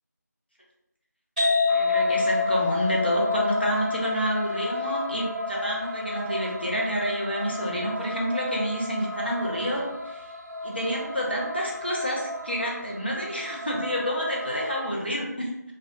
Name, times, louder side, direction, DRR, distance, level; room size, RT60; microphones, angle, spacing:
sound 1, 1.4-8.8, left 4 dB, 25° right, 0.8 m, -28 dB
voice 1, 1.7-10.3 10.6-15.7, equal, 35° left, -3 dB, 0.4 m, -29 dB
sound 2, 1.7-14.9, equal, 65° right, 0.4 m, -35 dB
2.5 x 2.1 x 2.3 m, 0.88 s
figure-of-eight pair, 175°, 10 cm